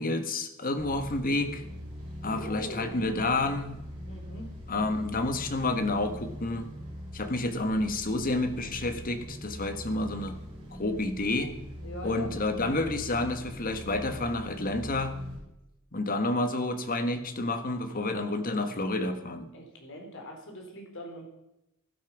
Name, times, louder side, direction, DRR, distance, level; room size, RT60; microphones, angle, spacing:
voice 1, 0.0-1.6 2.2-3.8 4.7-6.7 7.1-10.4 10.7-11.5 12.0-15.1 15.9-19.5, left 2 dB, 40° left, 8 dB, 1.5 m, -29 dB
sound 1, 0.8-15.4, equal, 25° right, 6.0 m, -42 dB
voice 2, 2.3-3.1 4.0-4.5 11.8-12.3 17.9-19.0 19.5-21.2, equal, 60° left, 2 dB, 4.4 m, -43 dB
16.0 x 12.0 x 6.1 m, 0.88 s
head